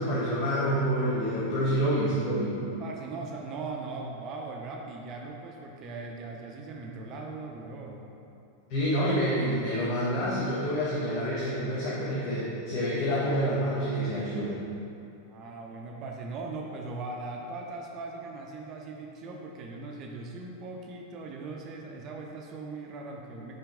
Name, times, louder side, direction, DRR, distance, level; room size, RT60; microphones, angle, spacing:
voice 1, 0.0-2.5 8.7-14.5, equal, 45° left, -8 dB, 1.1 m, -28 dB
voice 2, 2.5-8.1 15.3-23.6, right 3 dB, 35° right, 0 dB, 0.6 m, -39 dB
5.8 x 4.5 x 3.5 m, 2.7 s
figure-of-eight pair, 90°, 0 cm